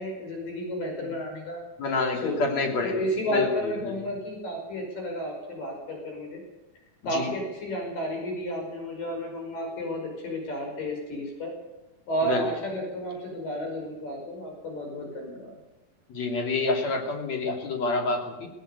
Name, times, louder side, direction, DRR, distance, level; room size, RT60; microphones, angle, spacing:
voice 1, 0.0-1.6 2.2-2.4 2.8-6.4 7.1-11.5 12.1-15.5, equal, 75° left, 1 dB, 7.1 m, -32 dB
voice 2, 1.8-4.1 7.1-7.3 12.2-12.5 16.1-18.5, left 3 dB, 50° left, 2 dB, 4.1 m, -28 dB
18.5 x 18.0 x 8.2 m, 1.0 s
omnidirectional pair, 4.0 m